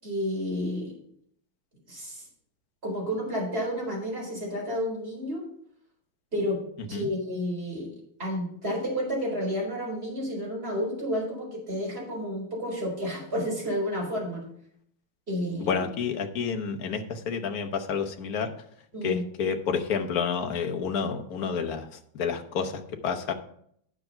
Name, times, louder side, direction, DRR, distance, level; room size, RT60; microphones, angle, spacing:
voice 1, 0.0-1.0 1.9-2.3 2.8-5.5 6.3-6.6 6.9-7.9 8.2-14.4 15.3-15.8 18.9-19.3, equal, 25° right, -3 dB, 4.6 m, -31 dB
voice 2, 15.6-18.5 19.0-23.3, left 6 dB, 55° left, 6 dB, 1.3 m, -29 dB
9.7 x 6.6 x 5.6 m, 0.67 s
omnidirectional pair, 2.3 m